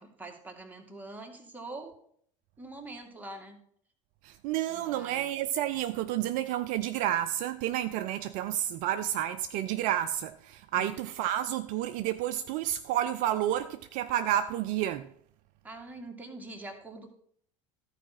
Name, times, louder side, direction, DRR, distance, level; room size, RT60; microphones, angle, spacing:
voice 1, 0.0-1.9 2.6-3.6 4.7-5.3 10.8-10.9 15.6-17.1, right 2 dB, 10° right, 2.2 m, -44 dB
voice 2, 4.2-15.1, right 12 dB, 55° right, 0.5 m, -30 dB
13.5 x 4.9 x 6.0 m
figure-of-eight pair, 65°, 17 cm